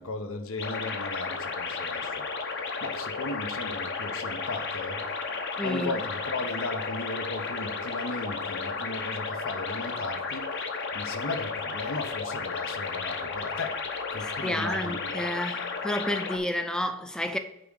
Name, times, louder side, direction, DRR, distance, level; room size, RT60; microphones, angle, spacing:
voice 1, 0.0-2.3 2.8-5.1 5.6-13.8 14.1-15.1, left 2 dB, 85° left, 1.0 m, -36 dB
sound 1, 0.6-16.4, left 4 dB, 55° left, 0.9 m, -33 dB
voice 2, 5.6-6.0 14.2-17.4, left 1 dB, 5° left, 0.5 m, -30 dB
9.0 x 3.6 x 6.5 m
head